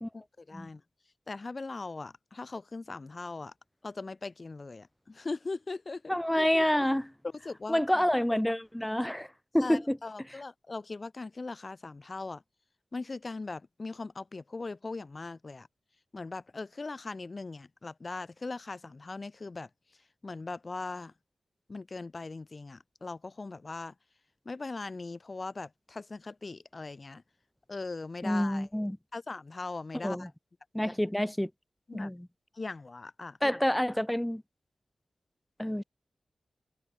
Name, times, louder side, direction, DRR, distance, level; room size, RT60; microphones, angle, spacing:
voice 1, 0.1-0.8 1.3-3.5 3.8-6.1 7.4-8.0 9.6-12.4 12.9-15.7 16.1-19.7 20.2-21.1 21.7-23.9 24.4-27.2 27.7-28.7 29.1-30.3 31.9-32.1 32.5-33.4, left 3 dB, 40° left, 6.7 m, -40 dB
voice 2, 6.1-7.1 7.7-9.3 9.5-10.0 28.2-29.0 30.0-30.3 30.7-31.5 31.9-32.3 33.4-34.4 35.6-35.8, equal, 5° left, 0.9 m, -28 dB
wide cardioid pair, 115°, 0 cm